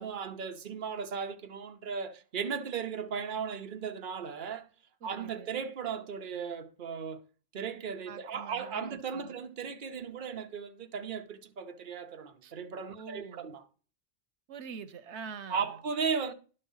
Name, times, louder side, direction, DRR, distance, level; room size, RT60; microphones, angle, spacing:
voice 1, 0.0-4.7 5.0-7.2 7.5-13.6 15.5-16.3, right 6 dB, 50° right, 1.0 m, -36 dB
voice 2, 5.0-5.5 8.1-9.4 12.4-12.5 12.9-13.5 14.5-15.7, right 6 dB, 85° right, 1.1 m, -45 dB
11.0 x 5.4 x 5.5 m
omnidirectional pair, 1.1 m